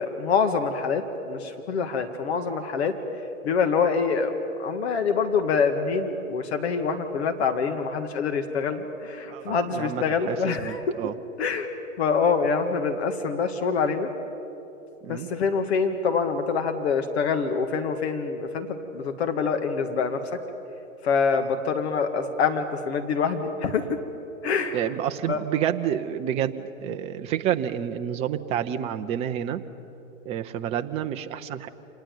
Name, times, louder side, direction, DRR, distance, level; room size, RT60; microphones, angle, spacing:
voice 1, 0.0-3.0 3.4-4.3 4.6-10.8 11.4-11.7 12.0-14.1 15.1-20.4 21.0-24.0 24.4-24.9 25.3-25.4, left 5 dB, 50° left, 7 dB, 1.9 m, -25 dB
voice 2, 9.3-11.1 15.0-15.3 24.7-29.6 30.2-31.7, right 10 dB, 15° right, 7 dB, 0.6 m, -29 dB
26.5 x 19.5 x 9.2 m, 3.0 s
hypercardioid pair, 135°, 40 cm